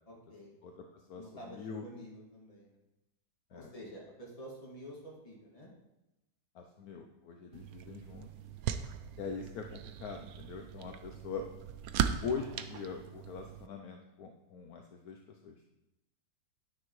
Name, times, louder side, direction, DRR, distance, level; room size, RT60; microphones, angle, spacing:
voice 1, 0.1-0.5 1.1-2.8 3.5-5.7, equal, 20° left, -4 dB, 2.2 m, -49 dB
voice 2, 0.6-1.9 3.5-3.7 6.5-8.3 9.2-11.5 12.2-15.6, left 5 dB, 65° left, 3 dB, 1.1 m, -42 dB
sound 1, 7.5-13.7, right 9 dB, 70° right, 0.9 m, -38 dB
10.0 x 9.6 x 3.1 m, 0.95 s
omnidirectional pair, 1.9 m